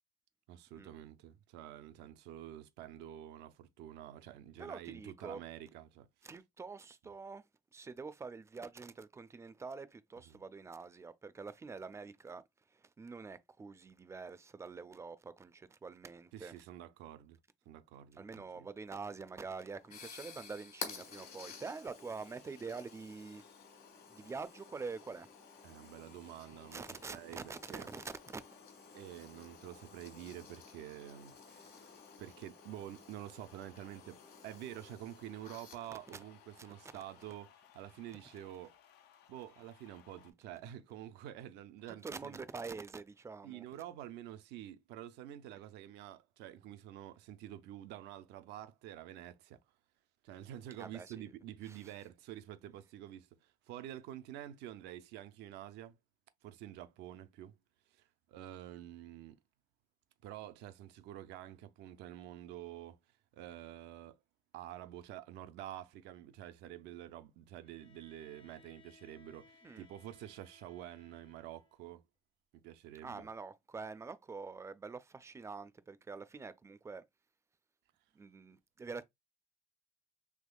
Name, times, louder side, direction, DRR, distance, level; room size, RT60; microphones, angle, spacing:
voice 1, 0.5-6.1 10.3-10.4 16.3-17.4 17.7-18.7 25.6-27.9 28.9-38.8 39.3-42.4 43.4-49.6 50.2-56.0 56.4-57.6 57.9-59.4 60.2-63.0 63.3-64.2 64.5-72.0 72.5-73.3, right 12 dB, 85° right, 0.4 m, -48 dB
voice 2, 4.6-5.4 6.2-7.4 7.7-12.4 12.7-16.5 18.1-23.4 24.1-25.3 26.7-28.4 35.9-36.2 36.6-36.7 36.9-37.0 41.9-43.6 50.8-51.3 51.6-51.9 69.6-69.9 73.0-77.0 78.1-79.0, right 4 dB, 15° right, 0.4 m, -46 dB
sound 1, 19.3-37.3, left 5 dB, 60° left, 1.5 m, -53 dB
sound 2, 20.9-40.3, left 10 dB, 80° left, 0.5 m, -63 dB
Bowed string instrument, 67.6-71.9, left 3 dB, 30° left, 0.6 m, -64 dB
3.5 x 3.1 x 2.2 m
cardioid pair, 110°, 17 cm